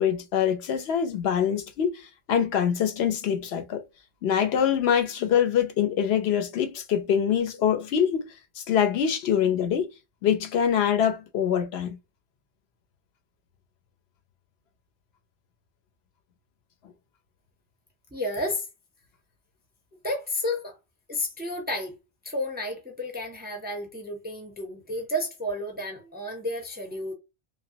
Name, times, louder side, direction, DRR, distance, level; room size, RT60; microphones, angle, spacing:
voice 1, 0.0-3.8 4.2-8.3 8.6-9.9 10.2-12.0, left 8 dB, 75° left, 0.8 m, -24 dB
voice 2, 18.1-18.7 20.0-20.8 21.1-22.0 22.2-27.1, left 1 dB, 10° right, 0.5 m, -31 dB
2.9 x 2.2 x 2.7 m
omnidirectional pair, 1.1 m